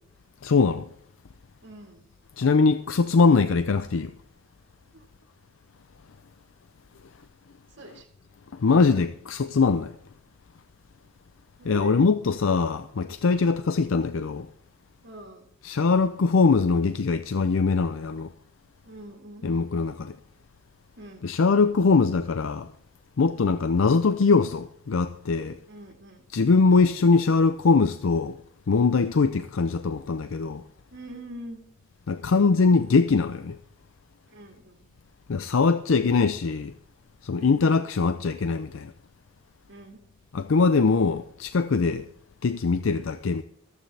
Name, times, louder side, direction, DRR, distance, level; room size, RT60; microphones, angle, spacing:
voice 1, 0.4-0.9 2.4-4.1 8.5-10.0 11.6-14.5 15.6-18.3 19.4-20.2 21.2-22.7 23.2-25.6 26.3-28.4 28.7-30.6 32.1-33.6 35.3-36.7 37.2-38.9 40.3-42.0 42.4-43.4, left 4 dB, 80° left, 0.5 m, -22 dB
voice 2, 1.6-2.0 4.9-5.0 7.8-8.1 8.7-8.8 11.6-12.1 15.0-15.5 18.8-19.5 21.0-21.2 25.7-26.2 30.9-31.6 34.3-34.8 37.3-37.6 39.7-40.0, right 1 dB, 60° right, 1.9 m, -43 dB
14.0 x 14.0 x 3.4 m
head